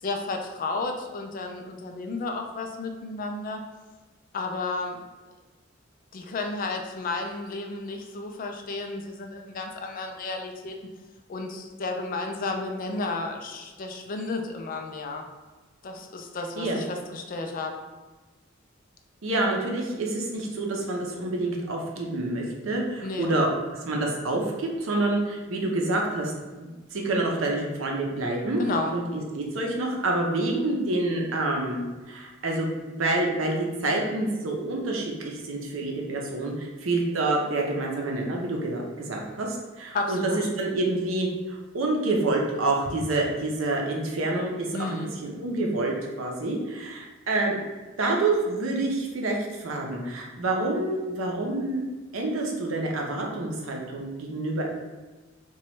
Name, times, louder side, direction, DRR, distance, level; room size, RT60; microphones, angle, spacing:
voice 1, 0.0-3.6 4.3-5.1 6.1-10.7 11.3-15.3 15.8-17.8 23.0-23.3 28.6-28.9 39.9-40.5 44.7-45.1, left 3 dB, 45° left, 3 dB, 0.4 m, -32 dB
voice 2, 19.2-26.3 26.6-28.6 28.9-47.6 48.0-51.8 52.1-54.6, right 2 dB, 85° right, 0 dB, 0.6 m, -27 dB
2.9 x 2.2 x 3.1 m, 1.2 s
head